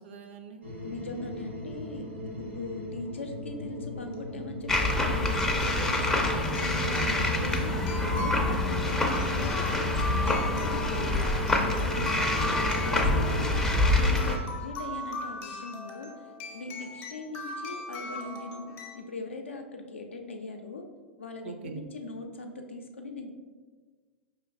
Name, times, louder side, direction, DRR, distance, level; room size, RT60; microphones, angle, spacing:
voice 1, 0.0-0.6 12.3-12.6 12.9-13.5 21.4-21.8, right 6 dB, 65° right, 6 dB, 0.4 m, -40 dB
sound 1, 0.6-13.6, left 1 dB, 90° right, 0.9 m, -40 dB
voice 2, 0.8-11.2 11.8-12.3 12.8-13.6 14.0-16.1 16.5-20.9 21.2-23.3, left 3 dB, 80° left, 4 dB, 0.5 m, -40 dB
sound 2, 4.1-4.2 5.6-19.0, left 2 dB, 35° left, 0.7 m, -40 dB
sound 3, 4.7-14.4, left 2 dB, 10° left, 0.4 m, -26 dB
5.0 x 3.1 x 2.4 m, 1.4 s
figure-of-eight pair, 95°, 6 cm